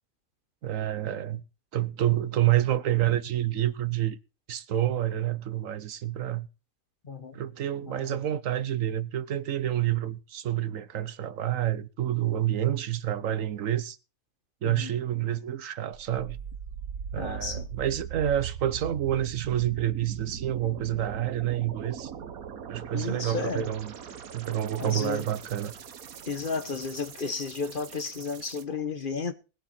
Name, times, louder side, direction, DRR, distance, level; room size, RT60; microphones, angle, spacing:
voice 1, 0.6-1.4 1.7-4.2 4.5-6.5 7.3-14.0 14.6-16.4 17.1-22.1 22.7-23.9 24.3-25.7, right 12 dB, 70° right, 1.2 m, -28 dB
voice 2, 7.0-7.4 7.8-8.2 14.6-14.9 17.2-17.7 22.9-23.7 24.8-25.2 26.3-29.3, left 4 dB, 40° left, 1.2 m, -33 dB
sound 1, 15.9-28.6, right 8 dB, 85° right, 1.5 m, -40 dB
20.0 x 7.7 x 4.3 m
omnidirectional pair, 1.4 m